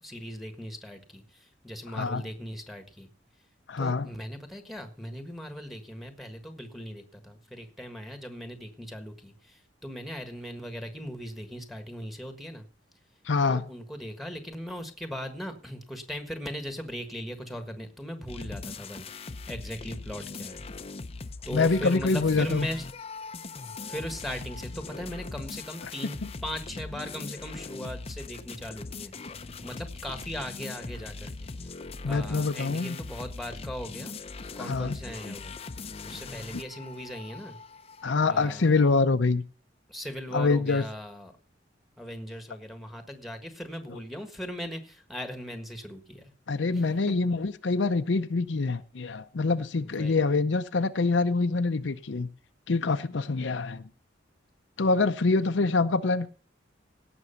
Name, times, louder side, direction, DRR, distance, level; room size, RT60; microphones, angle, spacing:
voice 1, 0.0-3.1 3.8-12.7 13.4-20.6 21.5-22.9 23.8-26.2 26.4-34.2 34.5-35.6 36.0-37.6 38.3-39.0 39.9-41.3 42.0-46.3 46.7-46.9 49.8-50.4, equal, ahead, 7 dB, 1.5 m, -39 dB
voice 2, 1.9-2.2 3.7-4.1 13.3-13.6 21.5-22.7 32.0-33.0 34.6-35.0 38.0-39.4 40.3-40.8 46.5-52.3 52.7-53.9 54.8-56.3, left 3 dB, 75° left, 9 dB, 0.6 m, -25 dB
sound 1, 18.3-38.2, left 3 dB, 30° left, 0.6 m, -40 dB
17.0 x 6.2 x 5.7 m, 0.41 s
head